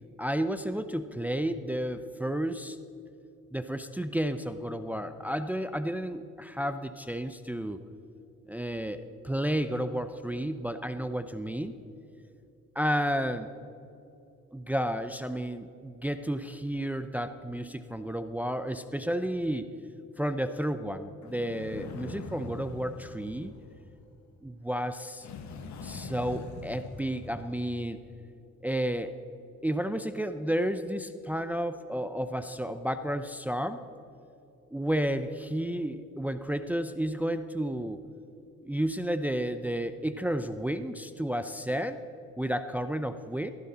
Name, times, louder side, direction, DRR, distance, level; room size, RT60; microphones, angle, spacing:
voice 1, 0.2-2.8 3.5-7.8 8.5-11.7 12.7-13.5 14.5-19.7 20.2-23.5 24.4-25.3 25.8-28.0 28.6-29.1 29.6-33.9 34.7-38.0 38.6-42.0 42.4-43.5, equal, 5° right, 10 dB, 0.6 m, -32 dB
sound 1, 21.2-24.3 25.2-27.9, left 4 dB, 70° left, 1.8 m, -43 dB
16.0 x 15.0 x 4.3 m, 2.8 s
cardioid pair, 90°, 30 cm